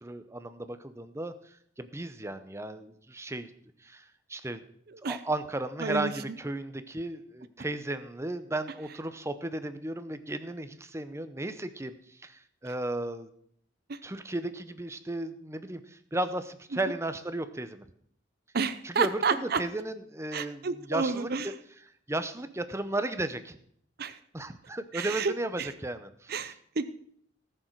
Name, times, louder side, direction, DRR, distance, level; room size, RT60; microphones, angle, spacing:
voice 1, 0.0-1.3 1.8-3.5 3.8-4.0 4.3-4.6 5.1-13.3 14.0-17.8 18.8-21.5 22.1-23.6 24.3-26.3, right 2 dB, 15° right, 11 dB, 0.7 m, -34 dB
voice 2, 4.9-5.2 5.8-6.1 13.9-14.0 18.5-19.6 20.3-21.5 24.0-24.2 24.9-25.7 26.3-26.9, right 5 dB, 55° right, 12 dB, 0.7 m, -30 dB
18.5 x 6.7 x 4.6 m, 0.66 s
head